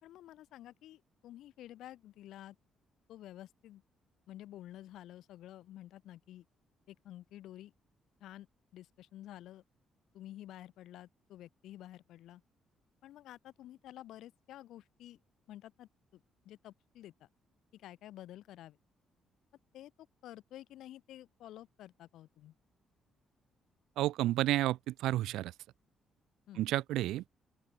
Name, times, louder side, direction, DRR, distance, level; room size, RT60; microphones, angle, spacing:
voice 1, 0.0-2.6 3.1-3.8 4.3-6.4 6.9-7.7 8.2-8.5 8.7-9.6 10.1-12.4 13.0-15.2 15.5-17.3 17.7-18.8 19.7-19.9 20.2-22.5 26.5-26.6, left 13 dB, 80° left, 2.5 m, -51 dB
voice 2, 24.0-25.5 26.6-27.2, right 15 dB, 90° right, 0.5 m, -31 dB
open air
cardioid pair, 90°, 0 cm